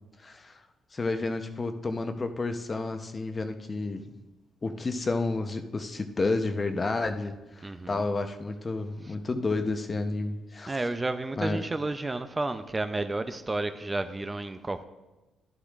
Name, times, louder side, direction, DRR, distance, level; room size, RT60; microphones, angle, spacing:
voice 1, 0.2-0.6 0.9-4.0 4.6-10.8 11.4-11.6, left 3 dB, 30° left, 7 dB, 0.7 m, -30 dB
voice 2, 7.6-8.0 10.7-14.8, right 2 dB, 20° right, 9 dB, 0.4 m, -31 dB
11.5 x 11.5 x 2.4 m, 1.1 s
cardioid pair, 90°, 0 cm